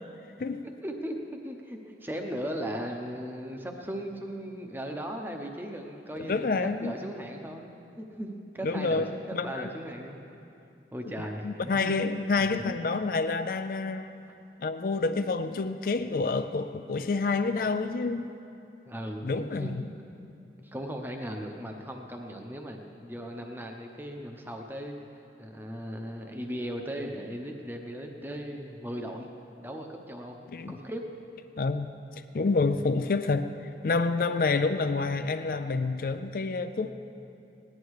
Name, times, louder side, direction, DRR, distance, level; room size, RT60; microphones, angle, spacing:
voice 1, 0.8-1.2 1.4-6.5 6.8-9.0 9.4-10.2 10.9-11.9 12.3-12.8 18.9-19.9 20.6-24.9 25.4-29.3 29.6-30.4 30.7-31.0, equal, 10° right, 0.8 m, -37 dB
voice 2, 6.3-6.9 8.6-9.7 11.2-14.1 14.6-18.3 19.2-19.8 30.5-30.8 31.6-31.9 32.3-33.5 33.8-36.9, left 3 dB, 50° left, 0.4 m, -28 dB
17.5 x 11.0 x 4.8 m
head